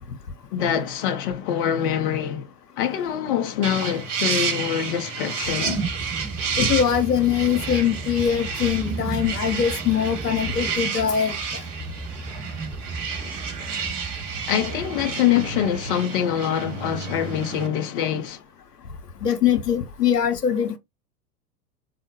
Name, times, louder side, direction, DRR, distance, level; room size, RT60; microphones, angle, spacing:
voice 1, 0.5-5.8 14.5-18.4, left 9 dB, 35° left, 0.5 m, -25 dB
sound 1, 3.6-17.7, right 5 dB, 55° right, 1.0 m, -31 dB
sound 2, 5.6-15.2, right 3 dB, 10° right, 1.5 m, -34 dB
voice 2, 6.6-11.4 19.2-20.8, left 8 dB, 85° left, 0.6 m, -22 dB
4.3 x 2.1 x 2.7 m
figure-of-eight pair, 90°, 46 cm